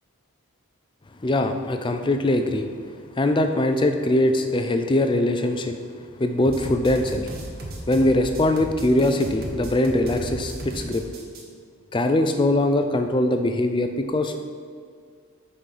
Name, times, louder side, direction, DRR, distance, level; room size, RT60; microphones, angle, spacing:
voice 1, 1.2-2.7 3.2-5.8 6.2-7.3 7.9-11.0 11.9-14.4, left 1 dB, 20° left, 6 dB, 0.4 m, -22 dB
sound 1, 6.4-11.4, right 1 dB, 45° right, 0.9 m, -35 dB
5.9 x 5.4 x 4.8 m, 2.2 s
head